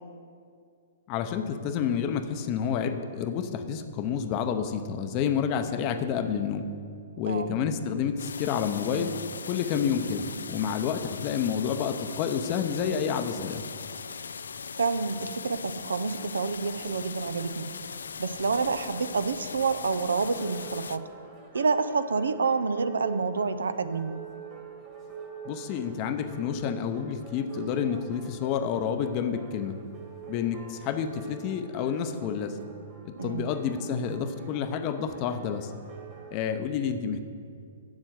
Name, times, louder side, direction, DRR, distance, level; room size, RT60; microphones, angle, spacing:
voice 1, 1.1-6.7 7.2-9.1 9.5-13.6 25.4-29.8 30.3-32.6 33.0-35.7 36.3-37.2, left 7 dB, 40° left, 9 dB, 0.7 m, -29 dB
voice 2, 7.3-7.6 14.8-17.7 18.2-21.0 21.5-24.2 33.2-33.5, right 4 dB, 85° right, 11 dB, 0.6 m, -28 dB
sound 1, 8.2-21.0, left 6 dB, 80° left, 0.3 m, -40 dB
sound 2, 20.3-36.4, right 7 dB, 30° right, 1.6 m, -45 dB
7.7 x 7.3 x 7.6 m, 2.3 s
hypercardioid pair, 125°, 0 cm